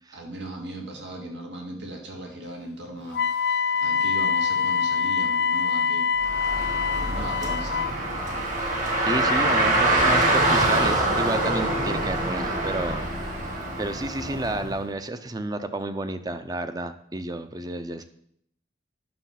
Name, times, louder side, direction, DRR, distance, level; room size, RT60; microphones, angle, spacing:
voice 1, 0.1-6.1 7.0-7.9, right 1 dB, 75° right, 1 dB, 2.0 m, -38 dB
Wind instrument woodwind instrument, 3.1-8.0, left 6 dB, 65° left, 0.3 m, -24 dB
Car, 6.2-14.7, right 1 dB, 45° right, 2.2 m, -24 dB
voice 2, 9.0-13.1 13.8-18.0, right 2 dB, 20° right, 10 dB, 0.6 m, -31 dB
9.6 x 6.2 x 5.8 m, 0.70 s
head